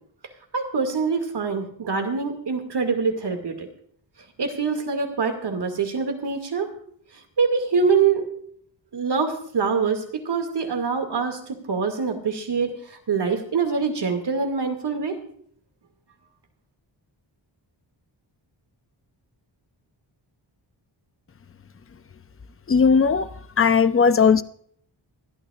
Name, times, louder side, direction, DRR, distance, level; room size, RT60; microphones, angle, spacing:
voice 1, 0.5-3.7 4.4-6.7 7.4-8.3 8.9-15.2, right 5 dB, 65° right, 4 dB, 2.3 m, -24 dB
voice 2, 22.7-23.3 23.6-24.4, left 5 dB, 30° left, 13 dB, 0.6 m, -17 dB
25.5 x 12.0 x 2.4 m, 0.64 s
wide cardioid pair, 125°, 44 cm